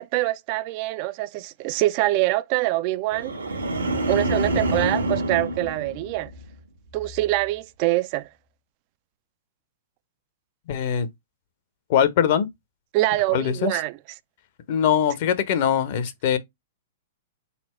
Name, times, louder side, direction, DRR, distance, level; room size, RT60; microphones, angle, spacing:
voice 1, 0.0-3.4 4.1-6.3 6.9-8.3 12.9-14.0, right 18 dB, 45° right, 0.3 m, -24 dB
sound 1, 3.1-6.5 6.9-7.3, right 1 dB, 85° right, 1.2 m, -27 dB
voice 2, 10.7-11.1 11.9-12.5 13.3-13.7 14.7-16.4, left 8 dB, 55° left, 0.9 m, -22 dB
4.2 x 2.1 x 4.3 m
hypercardioid pair, 110°, 0 cm